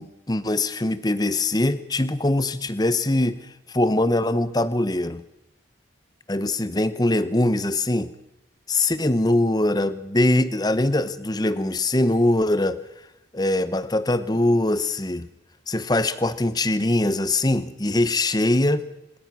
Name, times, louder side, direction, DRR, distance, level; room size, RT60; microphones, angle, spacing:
voice 1, 0.0-3.4 3.7-5.2 6.3-8.1 8.7-12.8 13.3-15.3 15.7-18.9, left 1 dB, 20° left, 14 dB, 0.9 m, -22 dB
25.5 x 21.0 x 6.2 m, 0.88 s
head